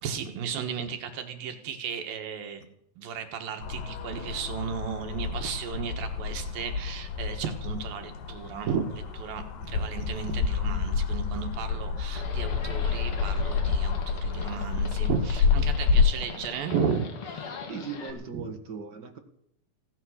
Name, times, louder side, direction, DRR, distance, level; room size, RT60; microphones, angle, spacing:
voice 1, 0.0-2.6 3.0-17.6 18.3-18.5, right 6 dB, 80° right, 6 dB, 3.2 m, -34 dB
sound 1, 3.6-16.1, left 5 dB, 75° left, 3.0 m, -29 dB
Livestock farm animals working animals, 12.2-18.1, left 5 dB, 45° left, 2.3 m, -42 dB
voice 2, 17.7-19.2, right 5 dB, 45° right, 5 dB, 1.6 m, -39 dB
16.0 x 12.5 x 6.4 m, 0.73 s
omnidirectional pair, 4.0 m